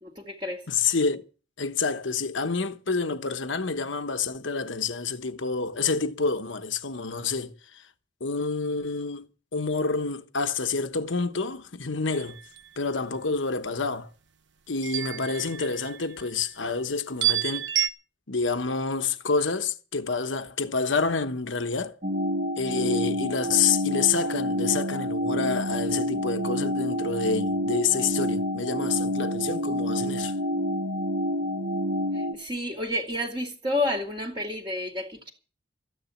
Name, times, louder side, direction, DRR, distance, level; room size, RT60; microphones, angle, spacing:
voice 1, 0.0-0.6 32.1-35.3, left 1 dB, 25° right, 2.5 m, -30 dB
voice 2, 0.7-1.3 1.6-7.8 8.2-12.4 12.8-14.1 14.7-17.7 18.3-22.0 22.6-30.3, left 4 dB, 85° left, 1.2 m, -28 dB
sound 1, 12.1-12.7 14.8-16.2 17.2-17.9, right 12 dB, 75° right, 1.0 m, -29 dB
sound 2, 22.0-32.3, equal, 40° right, 2.2 m, -28 dB
14.0 x 10.0 x 7.3 m
head